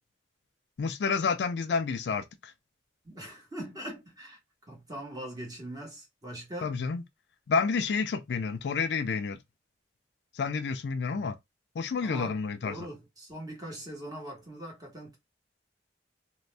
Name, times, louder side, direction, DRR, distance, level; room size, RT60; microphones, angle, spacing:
voice 1, 0.8-2.5 6.6-7.0 7.5-9.4 10.3-11.4 11.8-12.8, left 5 dB, 65° left, 0.4 m, -29 dB
voice 2, 3.0-4.4 4.7-6.8 11.1-11.3 12.0-12.3 12.6-15.2, right 1 dB, 20° right, 1.1 m, -41 dB
2.5 x 2.1 x 3.2 m
head